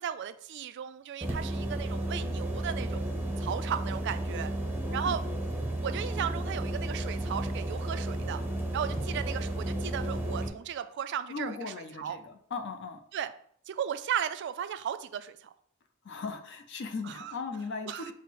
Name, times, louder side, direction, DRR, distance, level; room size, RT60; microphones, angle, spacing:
voice 1, 0.0-4.5 4.9-5.2 5.8-8.4 8.7-12.2 13.1-13.3 13.7-15.5 17.1-17.3 17.9-18.1, right 9 dB, 55° right, 11 dB, 0.3 m, -35 dB
sound 1, 1.2-10.5, right 1 dB, 10° right, 0.6 m, -33 dB
voice 2, 4.9-5.2 11.3-13.0 16.0-18.1, left 4 dB, 55° left, 7 dB, 0.5 m, -38 dB
5.8 x 2.0 x 4.5 m, 0.64 s
head